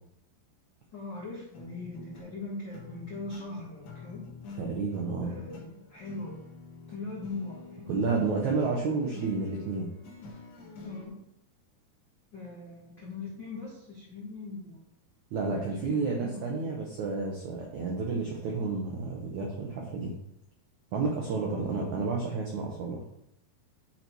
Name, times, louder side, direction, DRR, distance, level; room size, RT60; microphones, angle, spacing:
voice 1, 0.9-4.3 5.2-6.4 6.9-7.9 10.8-11.2 12.3-14.9 15.8-16.7 21.7-22.0, left 3 dB, 75° left, -5 dB, 1.0 m, -41 dB
sound 1, 1.5-11.1, left 4 dB, 55° left, 2.1 m, -47 dB
voice 2, 4.6-5.3 7.9-9.9 15.3-20.1 20.9-23.0, right 4 dB, 80° right, -1 dB, 1.7 m, -31 dB
10.0 x 4.2 x 4.5 m, 0.77 s
omnidirectional pair, 4.8 m